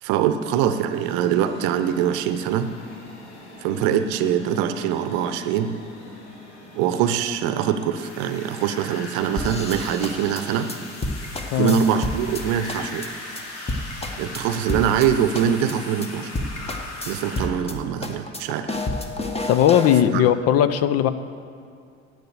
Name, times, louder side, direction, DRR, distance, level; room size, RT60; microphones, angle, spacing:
voice 1, 0.0-2.7 3.6-5.7 6.7-10.7 11.5-13.1 14.2-16.3 17.0-18.7 20.1-20.2, right 9 dB, 60° right, 10 dB, 0.8 m, -23 dB
sound 1, 0.9-17.5, left 2 dB, 80° left, 1.7 m, -39 dB
sound 2, 9.4-12.4 12.7-13.1 13.4-13.5 13.7-15.1 15.3-15.7 16.0-16.1 16.3-17.7 18.0-20.0, left 2 dB, 15° left, 1.4 m, -30 dB
voice 2, 19.5-21.1, left 10 dB, 45° left, 13 dB, 0.7 m, -18 dB
10.5 x 8.1 x 8.1 m, 2.3 s
hypercardioid pair, 65°, 34 cm